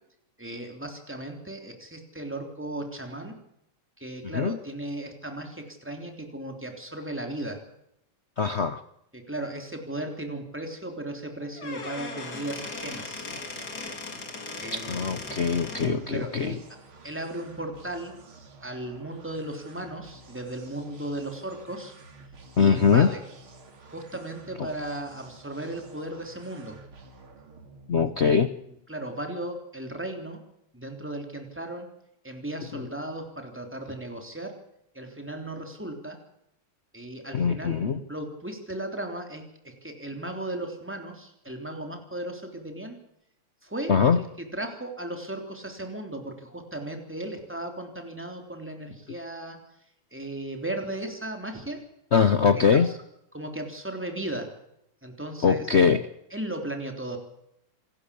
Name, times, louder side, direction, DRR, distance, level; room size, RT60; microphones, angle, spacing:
voice 1, 0.4-3.4 4.0-7.6 9.1-13.3 14.6-15.3 16.1-16.6 17.0-18.1 18.6-21.9 22.6-23.2 23.9-26.8 28.9-30.4 30.7-31.9 32.2-34.5 34.9-36.2 36.9-43.0 43.6-49.6 50.1-51.8 52.3-52.9 53.3-54.5 55.0-55.7 56.3-57.2, right 1 dB, 5° right, 4 dB, 3.3 m, -36 dB
voice 2, 8.4-8.8 14.7-16.6 22.6-23.1 24.6-24.7 27.9-28.5 32.7-32.8 37.3-38.0 43.9-44.2 52.1-52.9 55.4-56.0, left 6 dB, 75° left, 11 dB, 0.6 m, -22 dB
Squeak / Wood, 11.4-16.0, left 3 dB, 45° left, 3.8 m, -37 dB
sound 1, 14.8-28.5, right 3 dB, 70° right, 3.4 m, -50 dB
27.0 x 12.0 x 8.5 m, 0.79 s
omnidirectional pair, 2.4 m